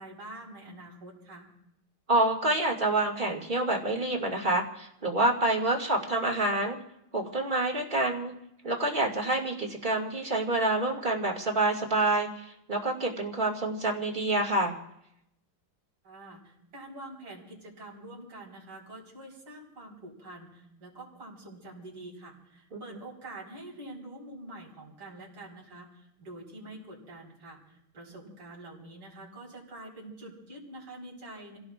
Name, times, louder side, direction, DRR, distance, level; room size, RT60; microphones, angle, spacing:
voice 1, 0.0-1.5 16.0-31.6, right 1 dB, 80° right, -2 dB, 5.0 m, -46 dB
voice 2, 2.1-6.8 7.1-8.3 8.6-14.8 22.7-22.8, right 2 dB, 25° right, -1 dB, 2.2 m, -27 dB
29.5 x 17.0 x 2.4 m, 0.82 s
omnidirectional pair, 2.2 m